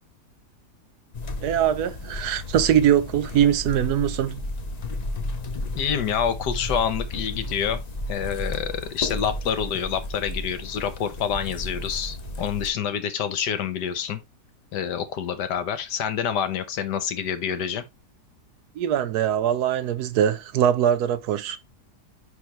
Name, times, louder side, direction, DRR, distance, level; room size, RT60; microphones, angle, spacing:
sound 1, 1.1-12.7, left 2 dB, 60° left, 0.4 m, -33 dB
voice 1, 1.4-4.5 18.8-21.6, right 10 dB, 70° right, 1.1 m, -22 dB
voice 2, 5.7-7.8 8.1-14.2 14.7-17.8, left 8 dB, 75° left, 1.5 m, -27 dB
9.5 x 3.5 x 3.1 m
omnidirectional pair, 1.8 m